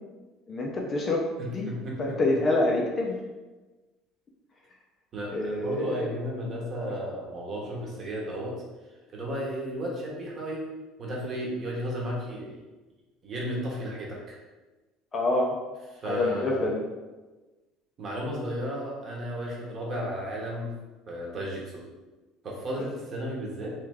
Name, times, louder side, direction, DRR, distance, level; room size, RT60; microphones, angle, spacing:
voice 1, 0.5-1.2 1.5-1.7 2.0-3.2 5.3-5.9 15.1-15.6 16.1-16.8, left 2 dB, 25° left, -1 dB, 0.5 m, -26 dB
voice 2, 1.4-2.2 5.1-8.6 9.1-10.6 11.0-12.6 13.2-14.4 15.9-16.7 18.0-20.7 21.1-21.8 22.4-23.7, equal, 30° right, -3 dB, 1.0 m, -34 dB
3.4 x 3.2 x 3.5 m, 1.2 s
cardioid pair, 160°, 0 cm